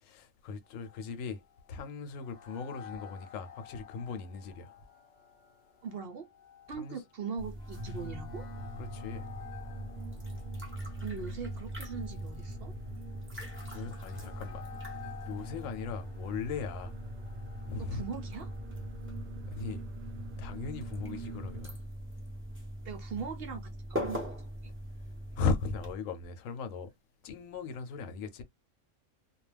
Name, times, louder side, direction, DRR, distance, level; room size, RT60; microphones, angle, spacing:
voice 1, 0.0-1.4 1.7-4.7 6.8-7.0 8.8-9.3 13.7-14.7 15.2-16.9 17.7-18.1 19.5-19.8 20.4-21.8 25.4-26.9 27.2-28.4, left 5 dB, 85° left, 1.0 m, -37 dB
sound 1, 0.6-19.1, left 8 dB, 50° left, 0.5 m, -53 dB
voice 2, 5.8-6.3 6.7-8.4 11.0-12.7 17.9-18.5 22.8-24.3, right 6 dB, 60° right, 0.7 m, -40 dB
sound 2, 7.4-25.9, equal, 10° right, 0.6 m, -42 dB
sound 3, 7.7-21.7, right 1 dB, 85° right, 1.0 m, -45 dB
2.3 x 2.2 x 3.2 m
omnidirectional pair, 1.3 m